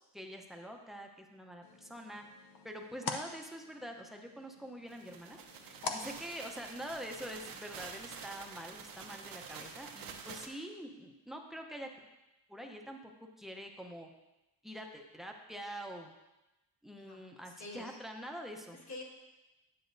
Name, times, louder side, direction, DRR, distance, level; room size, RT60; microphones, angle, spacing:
voice 1, 0.1-2.2 2.6-5.4 5.7-11.9 12.5-14.1 14.6-16.1 16.8-18.8, equal, ahead, 3 dB, 0.7 m, -45 dB
open light close light, 1.6-7.0, left 4 dB, 70° left, 0.8 m, -45 dB
sound 1, 4.9-10.5, right 6 dB, 65° right, 0.9 m, -48 dB
voice 2, 5.8-6.1 17.0-18.0 18.7-19.0, left 2 dB, 45° left, -3 dB, 1.7 m, -48 dB
10.0 x 7.6 x 2.6 m, 1.0 s
cardioid pair, 135°, 38 cm